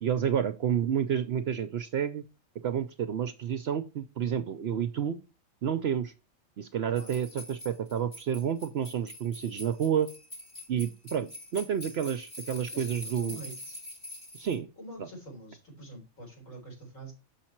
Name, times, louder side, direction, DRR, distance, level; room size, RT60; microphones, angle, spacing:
voice 1, 0.0-2.2 2.6-5.2 5.6-6.1 6.6-10.1 10.7-13.4 14.3-14.7, right 8 dB, 60° right, 10 dB, 0.7 m, -30 dB
sound 1, 7.0-14.6, left 1 dB, 30° left, 2.3 m, -44 dB
voice 2, 12.7-13.8 14.8-17.1, right 1 dB, 65° left, 0 dB, 4.4 m, -46 dB
7.2 x 5.9 x 4.4 m, 0.31 s
omnidirectional pair, 1.5 m